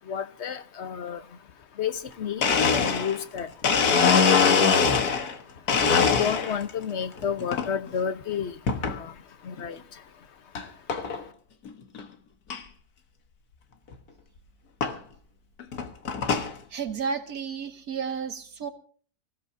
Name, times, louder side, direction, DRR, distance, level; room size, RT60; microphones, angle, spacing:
voice 1, 0.0-11.3, left 7 dB, 50° left, 1.1 m, -33 dB
Domestic sounds home sounds, 2.1-2.2 2.4-5.3 5.7-6.7 7.2-7.7 8.7-9.0 9.6-9.7 10.5-10.6 10.9-11.2 11.7-11.8 11.9-12.0 12.5-12.6 13.9-14.0 14.8-15.0 15.6-16.5, left 5 dB, 90° left, 1.8 m, -23 dB
voice 2, 16.7-18.7, right 6 dB, 75° right, 2.1 m, -32 dB
24.5 x 15.5 x 2.7 m
omnidirectional pair, 1.6 m